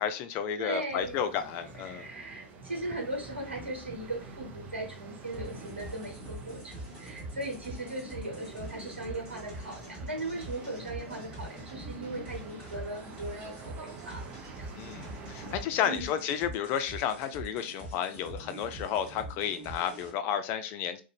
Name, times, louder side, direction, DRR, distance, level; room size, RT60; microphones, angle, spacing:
voice 1, 0.0-2.1 14.7-21.0, left 9 dB, 40° left, 9 dB, 0.4 m, -32 dB
voice 2, 0.6-1.3 1.8-14.3 14.6-14.7 15.4-15.5 15.8-16.1, right 1 dB, 85° right, 1 dB, 1.0 m, -38 dB
sound 1, 0.9-15.6, right 4 dB, 30° right, 0.5 m, -47 dB
sound 2, 5.3-20.1, right 1 dB, 15° right, 1.5 m, -44 dB
2.5 x 2.1 x 2.8 m, 0.33 s
figure-of-eight pair, 100°, 6 cm